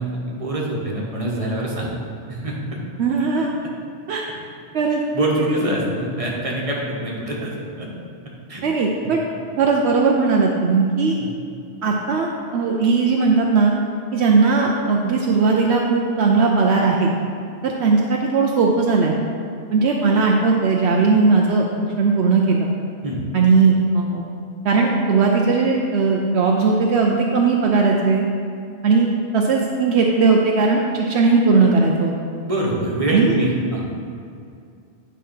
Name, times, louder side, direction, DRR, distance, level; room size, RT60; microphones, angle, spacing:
voice 1, 0.0-1.9 2.3-2.8 5.1-7.9 8.5-8.6 11.2-11.3 23.0-23.2 32.4-34.0, right 1 dB, 30° right, -3 dB, 1.3 m, -25 dB
voice 2, 3.0-3.5 4.1-4.3 4.7-5.0 5.5-5.7 8.6-9.2 9.6-11.2 11.8-13.7 14.1-17.1 17.6-19.1 19.7-22.7 23.3-24.2 24.6-28.2 28.8-29.1 29.3-32.1 33.1-33.3, right 4 dB, 70° right, 0 dB, 0.9 m, -18 dB
9.3 x 4.1 x 5.6 m, 2.4 s
omnidirectional pair, 1.2 m